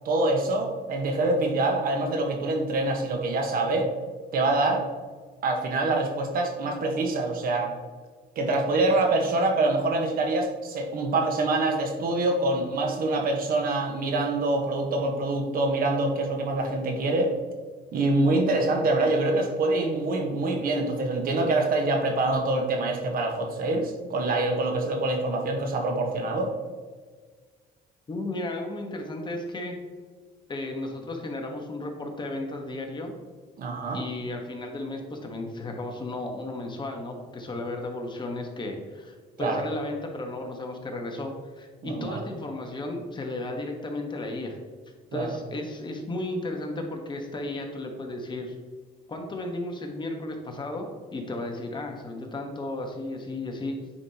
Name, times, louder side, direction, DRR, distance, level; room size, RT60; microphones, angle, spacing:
voice 1, 0.0-3.9 4.3-4.8 5.4-7.7 8.3-17.3 17.9-26.5 33.6-34.0 39.4-39.6 41.8-42.2 45.1-45.4, right 2 dB, 60° right, 3 dB, 1.3 m, -25 dB
voice 2, 28.1-29.7 30.5-33.1 33.9-44.6 45.1-48.5 49.1-53.8, left 2 dB, 25° left, 3 dB, 1.3 m, -34 dB
9.5 x 5.2 x 2.9 m, 1.5 s
cardioid pair, 110°, 17 cm